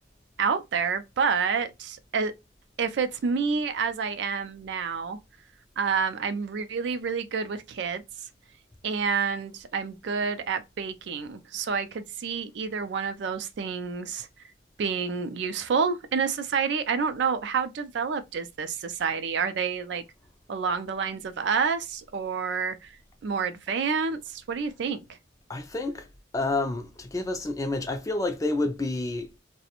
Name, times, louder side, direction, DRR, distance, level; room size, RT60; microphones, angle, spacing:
voice 1, 0.4-2.3 2.8-5.2 5.8-8.0 8.8-14.3 14.8-20.0 20.5-22.9 23.2-25.0, right 5 dB, 60° right, 0.3 m, -28 dB
voice 2, 25.5-26.1 26.3-29.3, left 2 dB, 15° left, 0.3 m, -29 dB
2.4 x 2.1 x 2.8 m
head